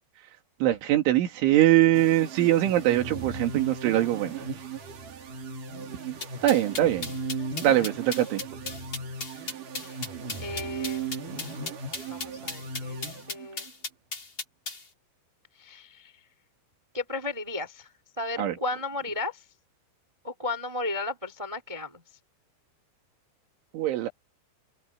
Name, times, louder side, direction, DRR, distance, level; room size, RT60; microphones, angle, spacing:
voice 1, 0.6-4.4 6.4-7.1 7.6-8.4 18.4-18.5 23.7-24.1, right 13 dB, 85° right, 4.8 m, -22 dB
sound 1, 1.9-13.7, right 4 dB, 50° right, 4.1 m, -37 dB
sound 2, 6.2-14.8, left 3 dB, 25° left, 3.8 m, -36 dB
voice 2, 10.4-11.3 12.1-13.7 15.6-16.1 16.9-17.9 18.2-19.4 20.2-22.0, left 2 dB, 15° right, 1.1 m, -34 dB
open air
omnidirectional pair, 5.4 m